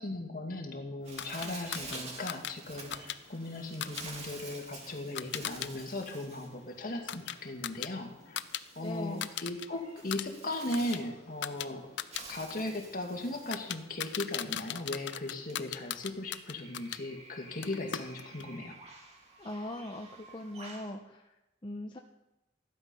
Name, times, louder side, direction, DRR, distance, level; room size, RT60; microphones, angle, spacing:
voice 1, 0.0-8.4 8.8-11.9 12.3-18.8, left 1 dB, 50° left, 2 dB, 2.1 m, -38 dB
Bird, 1.0-20.9, right 3 dB, 35° right, 2.4 m, -50 dB
sound 1, 1.2-5.7 6.0-8.6 8.9-9.7 10.0-17.0 17.6-18.5, left 10 dB, 70° left, 0.6 m, -40 dB
voice 2, 8.8-9.3 19.4-21.3 21.6-22.0, left 1 dB, 25° left, 1 dB, 0.8 m, -40 dB
14.5 x 11.5 x 5.5 m, 0.95 s
head